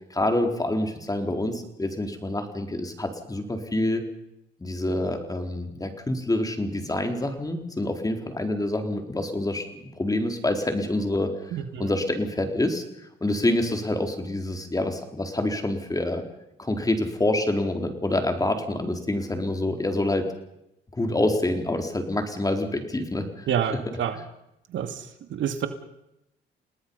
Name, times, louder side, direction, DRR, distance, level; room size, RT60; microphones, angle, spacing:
voice 1, 0.1-4.0 4.6-11.3 11.8-16.2 16.6-20.3 21.0-23.5, left 1 dB, 20° left, 5 dB, 4.2 m, -27 dB
voice 2, 11.5-11.9 23.5-24.2 24.7-25.0 25.3-25.7, right 9 dB, 75° right, 8 dB, 2.3 m, -28 dB
30.0 x 19.0 x 5.6 m, 0.86 s
cardioid pair, 90°, 20 cm